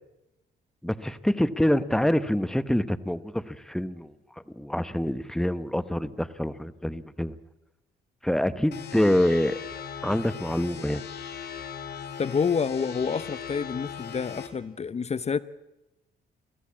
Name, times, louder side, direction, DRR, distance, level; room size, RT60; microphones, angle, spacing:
voice 1, 0.8-4.1 4.5-7.4 8.2-9.6 10.0-11.0, left 1 dB, ahead, 14 dB, 0.9 m, -26 dB
sound 1, 8.7-14.5, left 7 dB, 55° left, 2.8 m, -39 dB
voice 2, 12.2-15.4, left 6 dB, 35° left, 17 dB, 0.7 m, -28 dB
23.0 x 15.5 x 8.5 m, 0.97 s
cardioid pair, 90°, 20 cm